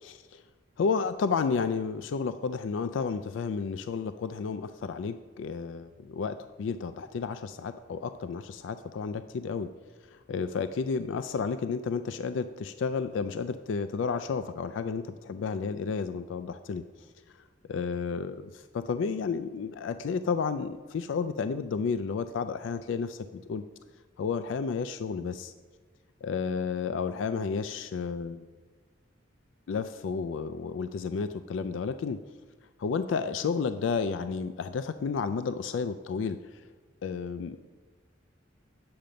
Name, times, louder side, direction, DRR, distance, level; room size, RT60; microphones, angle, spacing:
voice 1, 0.0-0.4 0.8-9.7 10.0-16.8 17.7-23.6 24.2-25.5 26.2-28.5 29.7-32.2 32.8-36.6 37.0-37.6, left 5 dB, 80° left, 11 dB, 0.3 m, -32 dB
8.8 x 6.6 x 5.1 m, 1.4 s
head